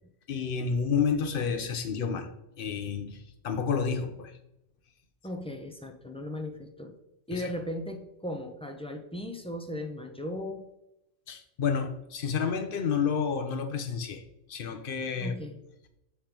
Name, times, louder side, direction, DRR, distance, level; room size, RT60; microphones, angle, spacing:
voice 1, 0.3-2.3 2.6-4.3 7.3-7.5 11.3-14.2 14.5-15.4, left 6 dB, 50° left, 0.9 m, -30 dB
voice 2, 5.2-7.0 7.3-10.7 15.2-15.6, left 1 dB, 10° left, 0.3 m, -37 dB
7.3 x 3.4 x 5.8 m
omnidirectional pair, 1.3 m